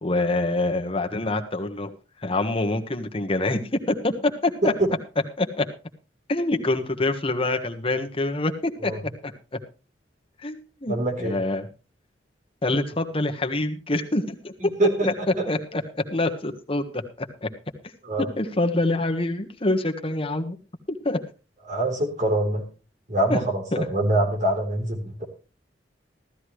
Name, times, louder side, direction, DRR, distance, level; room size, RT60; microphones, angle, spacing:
voice 1, 0.0-1.9 2.2-4.7 5.4-5.6 6.3-8.9 9.2-9.3 10.4-11.7 12.6-14.7 15.0-15.1 15.5-17.5 18.4-20.6 21.0-21.2 23.3-23.4 23.7-23.9, left 2 dB, 30° left, 5 dB, 1.5 m, -26 dB
voice 2, 10.9-11.4 14.8-14.9 15.4-15.5 18.0-18.2 21.7-22.7 23.1-25.2, right 1 dB, 45° right, 3 dB, 3.8 m, -24 dB
15.5 x 13.5 x 3.2 m, 0.33 s
head